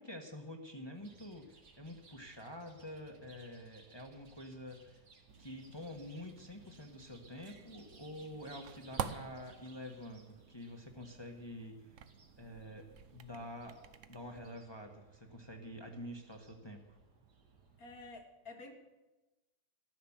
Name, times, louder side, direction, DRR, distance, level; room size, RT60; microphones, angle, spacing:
voice 1, 0.0-5.0 5.4-12.0 12.4-13.8 14.1-17.0, left 1 dB, 15° left, 2 dB, 1.3 m, -48 dB
Chirp tweet, 0.9-18.1, right 4 dB, 85° right, 2.5 m, -63 dB
sound 1, 5.3-14.5, right 7 dB, 55° right, 1.1 m, -48 dB
voice 2, 17.8-18.7, left 3 dB, 65° left, 5 dB, 2.2 m, -50 dB
14.0 x 11.5 x 7.3 m, 1.1 s
omnidirectional pair, 1.7 m